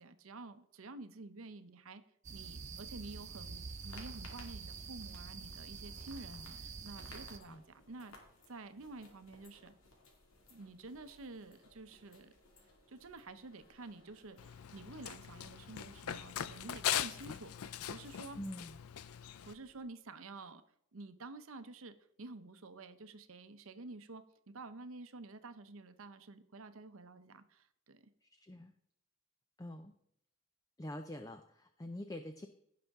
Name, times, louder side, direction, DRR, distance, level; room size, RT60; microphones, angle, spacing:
voice 1, 0.0-2.0 2.3-8.1 8.5-9.7 10.5-12.3 12.9-18.4 19.4-20.6 20.9-28.1, right 3 dB, 65° right, 11 dB, 0.8 m, -50 dB
sound 1, 2.2-7.4, right 5 dB, 35° right, 0.6 m, -47 dB
sound 2, 3.4-19.8, left 2 dB, 65° left, 2.3 m, -62 dB
Run, 14.4-19.5, left 10 dB, 85° left, 0.5 m, -40 dB
voice 2, 18.3-18.8 28.2-28.7 29.6-30.0 30.8-32.5, left 1 dB, 15° left, 7 dB, 0.5 m, -45 dB
16.5 x 5.8 x 3.6 m, 0.73 s
head